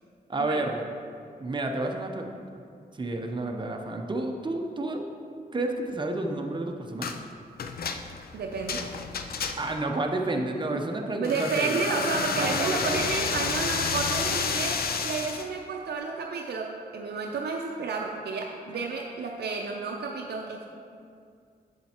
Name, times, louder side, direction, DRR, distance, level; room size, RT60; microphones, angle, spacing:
voice 1, 0.3-0.9 1.4-2.3 2.9-5.0 5.5-7.1 9.6-11.8 12.4-13.0, right 2 dB, 30° right, 3 dB, 0.7 m, -30 dB
sound 1, 7.0-7.2 7.6-9.8 11.2-15.5, left 5 dB, 70° left, 0.5 m, -30 dB
voice 2, 8.3-8.9 10.4-20.7, right 4 dB, 90° right, 1 dB, 0.5 m, -31 dB
7.4 x 7.3 x 2.9 m, 2.3 s
cardioid pair, 65°, 16 cm